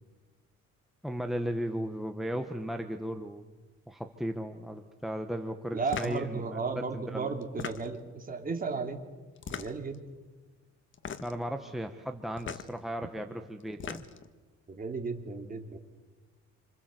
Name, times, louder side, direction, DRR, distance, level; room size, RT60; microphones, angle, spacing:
voice 1, 1.0-3.5 3.9-7.3 11.2-14.0, equal, ahead, 5 dB, 1.2 m, -36 dB
voice 2, 5.7-9.0 9.5-10.0 14.7-15.8, right 4 dB, 30° right, 4 dB, 3.2 m, -34 dB
sound 1, 5.9-6.2 7.4-8.1 9.4-10.0 10.9-11.4 12.4-12.7 13.6-14.3, left 7 dB, 40° left, 1.5 m, -39 dB
28.5 x 26.5 x 7.8 m, 1.3 s
cardioid pair, 140°, 30 cm